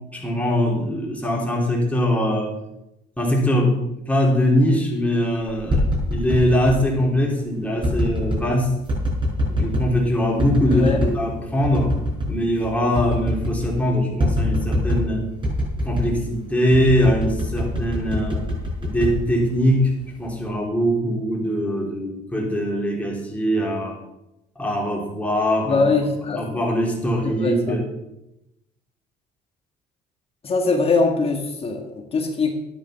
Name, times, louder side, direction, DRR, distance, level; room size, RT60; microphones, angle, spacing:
voice 1, 0.1-2.5 3.2-3.8 4.1-5.8 6.1-8.7 9.5-11.9 12.3-15.2 15.8-18.4 18.8-19.9 20.2-24.0 24.5-25.8 26.3-27.9, equal, 10° left, -2 dB, 3.5 m, -22 dB
sound 1, 5.5-6.8 7.8-8.4 8.9-9.9 10.4-11.2 11.6-12.4 12.6-12.7 13.0-13.8 14.2-15.1 15.4-16.2 16.7-19.8 20.2-20.6, left 1 dB, 30° right, 5.3 m, -24 dB
voice 2, 10.7-11.0 25.6-26.5 27.2-27.8 30.4-32.5, left 3 dB, 35° left, 3 dB, 1.7 m, -22 dB
11.0 x 9.7 x 5.8 m, 0.89 s
cardioid pair, 110°, 17 cm